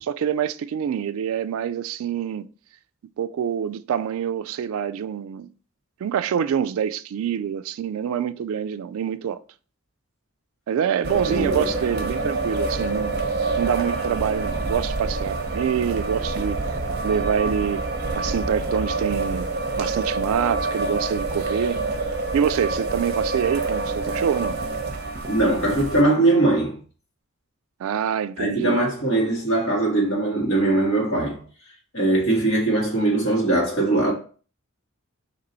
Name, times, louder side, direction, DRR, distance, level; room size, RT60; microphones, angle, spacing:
voice 1, 0.0-2.5 3.2-5.5 6.0-9.4 10.7-13.1 13.6-16.6 17.0-17.9 18.1-19.5 19.8-21.8 22.3-24.6 27.8-28.8, right 8 dB, 75° right, 0.3 m, -26 dB
sound 1, 11.0-26.0, right 3 dB, 50° right, 0.7 m, -27 dB
voice 2, 11.3-11.7 25.3-26.8 28.4-31.4 31.9-34.1, right 2 dB, 65° left, 1.7 m, -21 dB
3.9 x 3.0 x 4.3 m
head